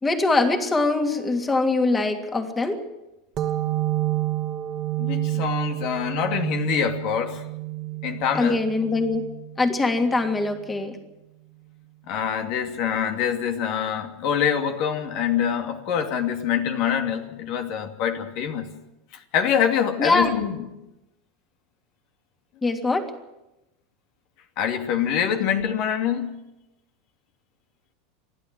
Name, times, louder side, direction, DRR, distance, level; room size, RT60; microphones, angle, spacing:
voice 1, 0.0-2.8 8.3-9.2 9.6-11.0 20.0-20.3 22.6-23.0, left 3 dB, 20° left, 5 dB, 3.0 m, -22 dB
sound 1, 3.4-10.7, right 15 dB, 40° right, 1.9 m, -29 dB
voice 2, 5.0-7.4 8.0-8.6 12.1-18.7 19.1-20.7 24.6-26.4, left 8 dB, 55° left, 5 dB, 2.5 m, -25 dB
28.5 x 12.0 x 7.6 m, 0.95 s
hypercardioid pair, 85°, 0 cm